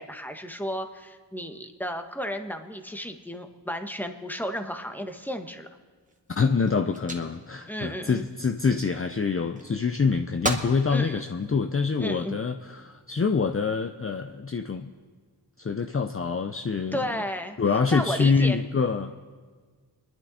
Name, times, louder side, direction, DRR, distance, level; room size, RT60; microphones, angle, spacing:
voice 1, 0.0-5.7 7.7-8.3 10.9-11.2 12.0-12.4 16.9-17.6 17.9-18.6, equal, 5° left, 6 dB, 1.4 m, -33 dB
sound 1, 6.0-9.1 9.6-10.1 10.4-10.8 11.4-12.1 12.8-13.2, right 1 dB, 20° right, 2.0 m, -36 dB
voice 2, 6.3-14.9 15.6-17.0 17.6-19.1, left 5 dB, 30° left, 7 dB, 0.7 m, -25 dB
29.0 x 11.5 x 4.2 m, 1.6 s
wide cardioid pair, 70°, 42 cm